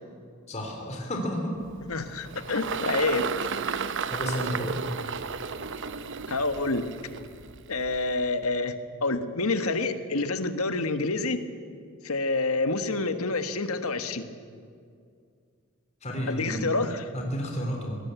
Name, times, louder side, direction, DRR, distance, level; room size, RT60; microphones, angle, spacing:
voice 1, 0.5-1.5 4.1-4.7 16.0-16.6 17.1-18.0, equal, 30° left, 1 dB, 3.3 m, -31 dB
Engine, 1.6-8.2, right 5 dB, 55° right, 0.9 m, -33 dB
voice 2, 1.9-3.3 6.3-6.9 7.7-11.4 12.0-14.3 16.3-17.1, left 3 dB, 70° left, 10 dB, 1.5 m, -28 dB
24.0 x 18.0 x 8.3 m, 2.2 s
head